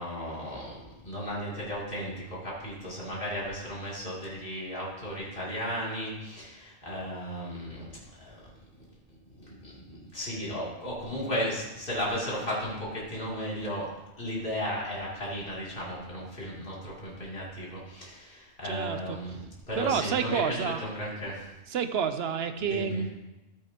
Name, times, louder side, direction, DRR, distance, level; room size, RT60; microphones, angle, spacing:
voice 1, 0.0-7.8 8.2-8.4 9.4-13.9 14.2-21.5 22.7-23.0, equal, 50° left, -6 dB, 3.1 m, -35 dB
voice 2, 18.6-19.2 19.8-20.8 21.7-23.1, right 6 dB, 65° right, 9 dB, 0.9 m, -29 dB
13.0 x 8.5 x 2.9 m, 1.0 s
omnidirectional pair, 1.2 m